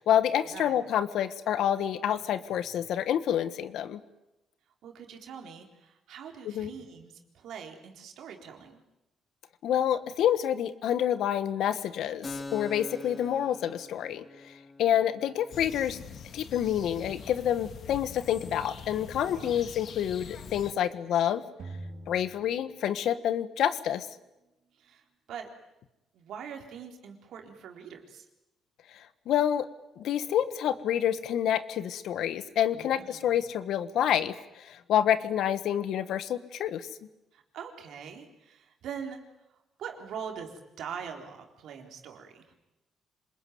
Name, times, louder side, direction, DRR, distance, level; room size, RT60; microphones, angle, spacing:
voice 1, 0.0-4.0 6.4-6.7 9.6-14.2 14.8-16.0 16.3-21.4 22.1-24.1 28.9-29.7 30.0-36.9, left 10 dB, 80° left, 13 dB, 1.4 m, -28 dB
voice 2, 4.8-8.8 19.2-19.6 24.8-25.5 26.1-28.3 32.7-33.4 37.3-39.2 39.8-42.5, right 7 dB, 75° right, 3 dB, 3.9 m, -43 dB
Keyboard (musical), 12.2-19.5, left 3 dB, 25° left, 2.2 m, -46 dB
sound 1, 15.5-20.7, left 6 dB, 60° left, 1.9 m, -44 dB
sound 2, 21.6-23.4, right 2 dB, 60° right, 3.5 m, -44 dB
26.5 x 21.0 x 9.5 m, 0.97 s
cardioid pair, 90°, 0 cm